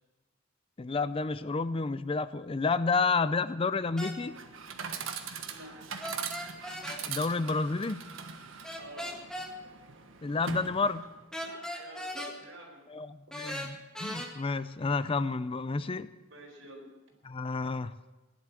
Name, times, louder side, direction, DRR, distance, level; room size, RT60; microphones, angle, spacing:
voice 1, 0.8-4.3 7.0-8.0 10.2-11.0 12.9-13.1 13.3-16.1 17.3-17.9, left 4 dB, 25° left, 14 dB, 0.5 m, -30 dB
sound 1, 4.0-4.2 6.0-7.0 8.6-9.5 11.3-12.3 13.3-14.3, equal, 5° left, 1.8 m, -38 dB
Chatter / Coin (dropping), 4.2-11.2, right 6 dB, 85° right, 1.4 m, -41 dB
voice 2, 5.5-6.1 8.8-9.2 11.4-12.8 13.3-13.7 16.3-16.9, right 1 dB, 70° right, 1 dB, 4.6 m, -49 dB
17.0 x 11.0 x 7.5 m, 1.2 s
head